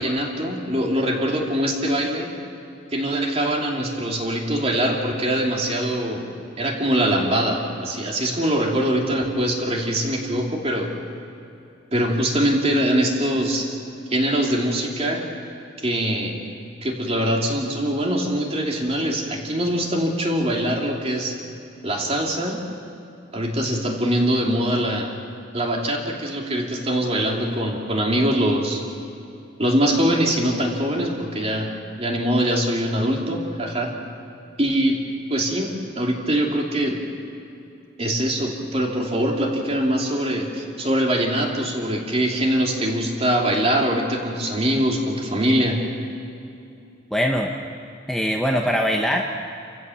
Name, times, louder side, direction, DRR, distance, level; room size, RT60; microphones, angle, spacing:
voice 1, 0.0-2.3 2.9-6.3 6.6-10.9 11.9-13.7 14.1-15.2 15.8-16.3 16.8-21.4 21.8-22.6 23.3-25.1 25.5-28.8 29.6-31.7 32.0-33.9 34.6-35.0 35.3-37.0 38.0-45.8, right 1 dB, 30° right, 0 dB, 2.9 m, -23 dB
voice 2, 47.1-47.5 48.1-49.2, equal, ahead, 0 dB, 1.0 m, -21 dB
29.0 x 15.5 x 7.1 m, 2.7 s
head